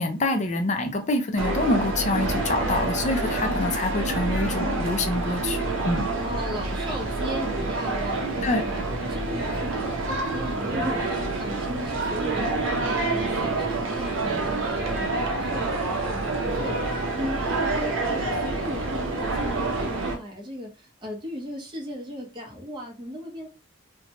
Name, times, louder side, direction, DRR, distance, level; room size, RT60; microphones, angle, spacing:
voice 1, 0.0-6.1 8.4-8.6, left 2 dB, 35° left, 0.4 m, -26 dB
sound 1, 1.4-20.2, right 2 dB, 70° right, 0.6 m, -27 dB
voice 2, 6.1-23.5, equal, 25° right, 0.8 m, -37 dB
2.8 x 2.2 x 2.8 m
head